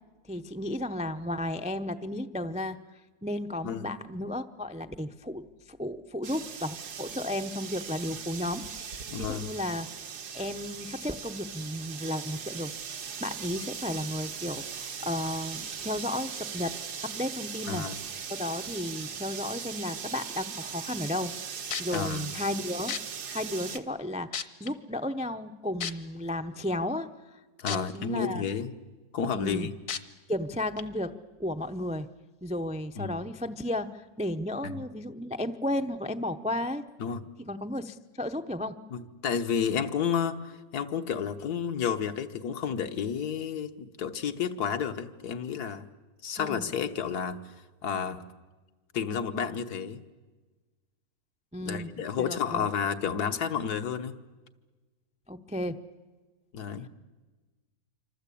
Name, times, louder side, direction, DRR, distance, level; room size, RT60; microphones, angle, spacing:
voice 1, 0.3-2.8 3.2-9.9 10.3-12.7 13.0-16.8 17.0-17.9 18.3-21.3 21.8-23.0 23.3-27.4 27.7-28.4 29.3-29.7 30.3-31.1 31.4-32.1 32.4-36.8 37.5-38.7 46.4-46.7 51.5-51.9 52.2-52.7 55.3-55.8, left 1 dB, 10° right, 8 dB, 0.3 m, -33 dB
sound 1, 6.2-23.8, right 7 dB, 90° right, 1.9 m, -39 dB
voice 2, 9.1-9.5 17.7-18.0 21.9-22.3 27.6-28.7 29.1-29.7 33.0-33.2 34.6-34.8 37.0-37.2 38.9-45.9 46.2-47.4 47.8-48.2 48.9-50.0 51.6-54.2 56.5-56.9, left 7 dB, 75° left, 8 dB, 1.7 m, -31 dB
sound 2, 21.3-21.4 21.7-22.0 22.9-23.0 23.8-23.9 24.3-24.7 25.8-25.9 27.7-27.8 28.3-28.4 29.9-30.0 30.8-30.9, left 7 dB, 60° left, 1.5 m, -32 dB
26.5 x 25.5 x 8.5 m, 1.3 s
omnidirectional pair, 1.7 m